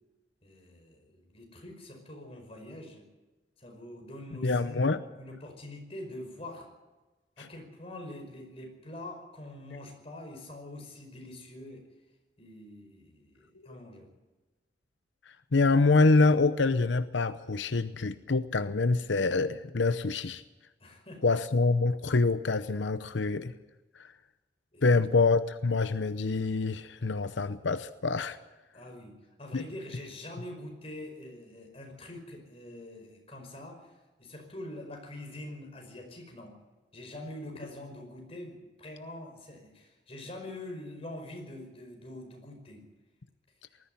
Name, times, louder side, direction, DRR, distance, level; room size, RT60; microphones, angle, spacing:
voice 1, 0.4-3.1 3.6-6.7 7.4-11.9 12.4-14.1 20.8-21.4 24.7-24.9 28.7-29.1 29.4-33.9 34.2-36.6 36.9-42.8, left 1 dB, 35° left, 3 dB, 5.2 m, -44 dB
voice 2, 4.4-5.0 7.4-7.5 15.5-20.4 21.2-23.5 24.0-24.1 24.8-28.4 29.5-29.6, left 3 dB, 85° left, 12 dB, 0.8 m, -26 dB
19.5 x 14.5 x 9.8 m, 1.1 s
head